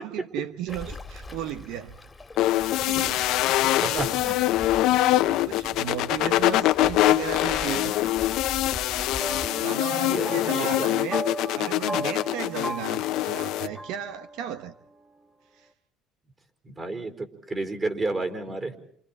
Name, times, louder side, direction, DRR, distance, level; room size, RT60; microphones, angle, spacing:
voice 1, 0.0-2.0 2.8-3.5 3.8-4.1 4.7-4.9 5.2-7.9 9.5-11.3 11.5-14.7 15.5-15.7, right 10 dB, 75° right, 1.1 m, -35 dB
Waves surf, 0.7-9.5, left 2 dB, 15° left, 2.2 m, -43 dB
sound 1, 2.4-13.7, left 15 dB, 70° left, 1.0 m, -24 dB
voice 2, 3.5-4.3 9.9-10.9 16.6-18.8, right 2 dB, 25° right, 4.4 m, -32 dB
sound 2, 7.7-14.7, right 1 dB, ahead, 1.6 m, -37 dB
29.0 x 27.5 x 4.4 m
cardioid pair, 115°, 0 cm